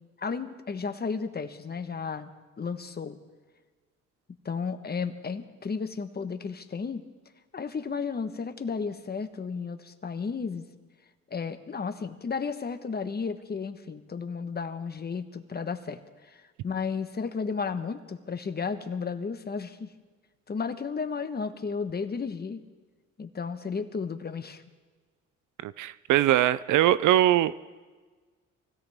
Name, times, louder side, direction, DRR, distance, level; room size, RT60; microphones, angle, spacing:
voice 1, 0.2-2.3 2.6-3.2 4.4-7.0 7.5-10.6 11.3-19.9 20.5-22.6 23.2-24.6, left 5 dB, 30° left, 9 dB, 1.2 m, -33 dB
voice 2, 25.6-27.5, right 13 dB, 80° right, 17 dB, 0.6 m, -22 dB
24.0 x 16.0 x 3.6 m, 1.4 s
cardioid pair, 90°, 30 cm